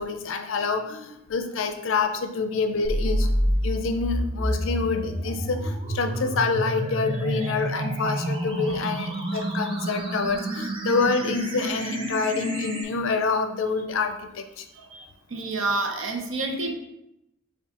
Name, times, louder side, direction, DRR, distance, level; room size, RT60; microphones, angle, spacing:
voice 1, 0.0-14.6, left 4 dB, 70° left, 7 dB, 0.5 m, -27 dB
sound 1, 2.8-12.8, right 1 dB, 25° right, 0.6 m, -28 dB
voice 2, 14.7-16.7, right 2 dB, 70° right, 3 dB, 0.6 m, -30 dB
6.9 x 2.3 x 2.8 m, 0.86 s
head